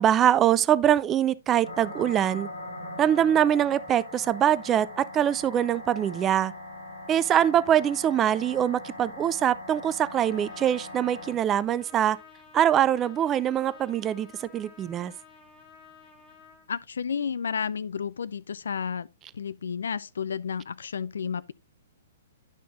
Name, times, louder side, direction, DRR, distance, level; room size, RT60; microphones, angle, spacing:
voice 1, 0.0-2.5 3.0-6.5 7.1-12.2 12.5-15.1, right 10 dB, 20° right, 0.4 m, -23 dB
sound 1, 1.6-11.3, left 2 dB, 80° left, 3.0 m, -41 dB
Trumpet, 10.2-16.7, left 5 dB, 15° left, 1.9 m, -53 dB
voice 2, 16.7-19.1 19.3-21.5, left 6 dB, 65° left, 0.4 m, -31 dB
10.0 x 5.9 x 2.6 m
figure-of-eight pair, 115°, 0 cm